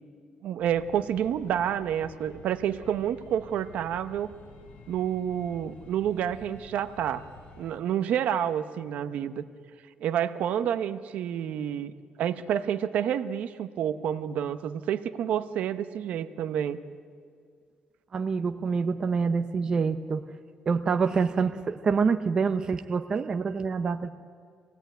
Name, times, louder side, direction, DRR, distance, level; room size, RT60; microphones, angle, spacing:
voice 1, 0.4-4.3 4.9-7.3 7.6-9.4 10.0-16.8, right 9 dB, 60° right, 12 dB, 0.9 m, -29 dB
sound 1, 0.6-7.8, left 4 dB, 50° left, 2.3 m, -50 dB
voice 2, 18.1-20.3 20.7-24.1, right 5 dB, 30° right, 8 dB, 0.6 m, -26 dB
25.0 x 17.5 x 9.2 m, 2.2 s
cardioid pair, 160°, 3 cm